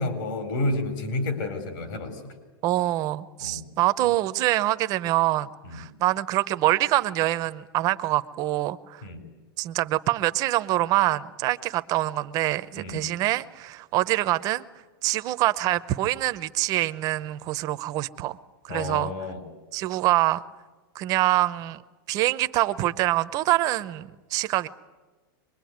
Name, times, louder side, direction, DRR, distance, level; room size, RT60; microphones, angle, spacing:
voice 1, 0.0-2.3 3.4-3.6 5.6-5.8 9.0-9.2 12.7-13.1 18.7-19.4, left 2 dB, 60° left, 7 dB, 4.6 m, -30 dB
voice 2, 2.6-9.0 9.6-14.6 15.0-18.4 18.6-19.1 19.7-20.4 20.9-21.8 22.1-24.7, right 16 dB, 30° right, 13 dB, 0.7 m, -25 dB
24.5 x 21.5 x 9.5 m, 1.3 s
supercardioid pair, 160°, 12 cm